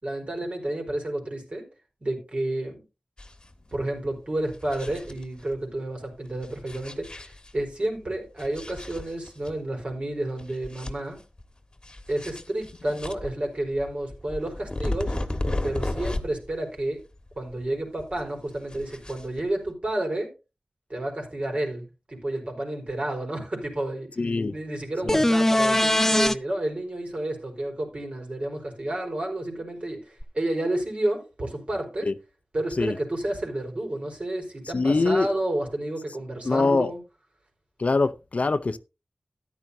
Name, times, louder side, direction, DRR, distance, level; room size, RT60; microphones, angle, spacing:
voice 1, 0.0-1.6 2.0-2.8 3.7-11.2 12.1-15.1 15.6-17.0 17.4-20.3 20.9-24.1 24.5-32.1 32.5-37.0, right 1 dB, 50° right, 4.5 m, -30 dB
sound 1, 3.2-3.5 3.8-3.9 4.4-5.6 6.4-7.7 8.4-9.5 9.9-10.0 10.4-11.4 11.8-16.5 16.8-17.7 18.0-19.7, left 2 dB, 35° left, 1.4 m, -34 dB
voice 2, 24.2-24.5 25.1-25.2 32.1-32.2 32.8-32.9 34.7-35.3 36.4-36.9 37.8-38.8, left 3 dB, 60° left, 0.7 m, -23 dB
sound 2, 25.1-26.3 30.2-30.3, left 1 dB, 15° left, 0.6 m, -20 dB
13.5 x 11.0 x 2.7 m
wide cardioid pair, 80°, 3 cm